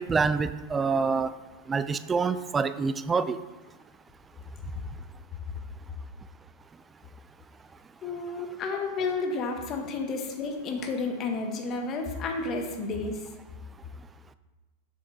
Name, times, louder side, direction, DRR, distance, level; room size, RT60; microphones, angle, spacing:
voice 1, 0.0-1.3 1.7-3.4, right 5 dB, 15° right, 13 dB, 0.3 m, -26 dB
voice 2, 8.0-13.3, left 3 dB, 30° left, 3 dB, 1.2 m, -31 dB
7.5 x 5.8 x 4.0 m, 1.2 s
figure-of-eight pair, 90°, 0 cm